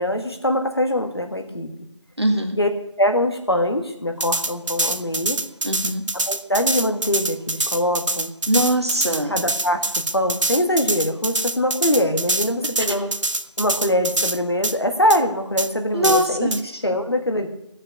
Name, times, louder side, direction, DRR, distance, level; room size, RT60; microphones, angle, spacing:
voice 1, 0.0-1.7 2.6-2.7 3.0-5.4 6.3-8.3 9.3-13.1 13.6-17.5, left 1 dB, 55° left, 5 dB, 1.6 m, -23 dB
voice 2, 2.2-2.6 5.6-6.0 8.5-9.4 15.9-16.6, equal, 60° right, 4 dB, 1.8 m, -21 dB
sound 1, 4.2-14.4 14.6-14.8 15.1-15.2 15.6-15.7 16.0-16.6, right 2 dB, 80° right, 0.7 m, -25 dB
15.0 x 6.6 x 6.4 m, 0.83 s
figure-of-eight pair, 175°, 16 cm